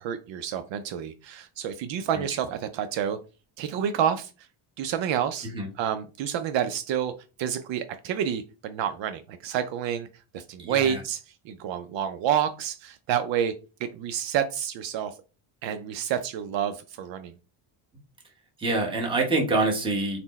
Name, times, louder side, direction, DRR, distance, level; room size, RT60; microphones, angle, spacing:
voice 1, 0.0-3.2 3.6-4.3 4.8-5.5 5.8-7.1 7.4-10.1 10.3-13.5 13.8-15.1 15.6-17.3, right 9 dB, 65° right, 0.5 m, -29 dB
voice 2, 10.6-11.0 18.6-20.2, right 2 dB, 10° right, 0.8 m, -25 dB
4.2 x 2.1 x 4.0 m
cardioid pair, 160°, 49 cm